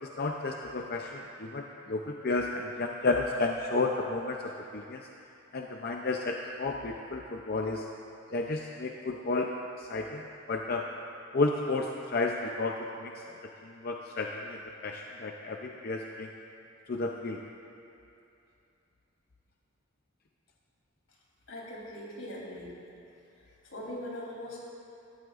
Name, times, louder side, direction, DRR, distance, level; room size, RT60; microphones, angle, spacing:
voice 1, 0.0-5.1 5.5-7.9 8.3-10.9 11.3-13.4 13.6-16.3 16.9-17.4, left 3 dB, 50° left, 1 dB, 0.6 m, -32 dB
voice 2, 21.5-22.8 23.3-24.6, left 1 dB, 85° left, -4 dB, 3.4 m, -41 dB
18.5 x 14.0 x 2.5 m, 2.7 s
head